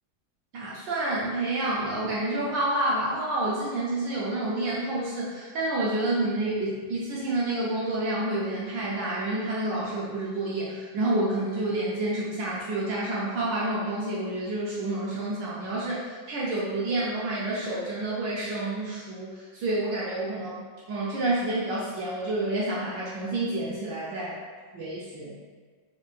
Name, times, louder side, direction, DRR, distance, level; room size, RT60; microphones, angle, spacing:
voice 1, 0.5-20.6 20.9-24.4 24.7-25.3, right 2 dB, 70° right, -7 dB, 1.2 m, -29 dB
4.3 x 3.0 x 2.4 m, 1.5 s
omnidirectional pair, 2.3 m